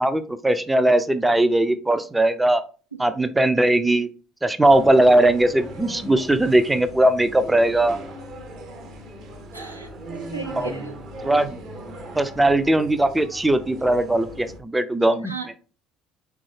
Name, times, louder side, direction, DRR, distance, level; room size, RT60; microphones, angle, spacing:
voice 1, 0.0-2.6 3.0-4.1 4.4-8.0 10.6-10.7 11.2-11.5 12.2-15.3, right 1 dB, 10° right, 10 dB, 0.4 m, -19 dB
sound 1, 4.6-14.6, right 1 dB, 50° right, 0.7 m, -38 dB
voice 2, 9.5-9.9 10.3-11.0 15.2-15.5, right 5 dB, 90° right, 4 dB, 0.4 m, -35 dB
3.6 x 2.3 x 3.3 m, 0.36 s
figure-of-eight pair, 55°, 0 cm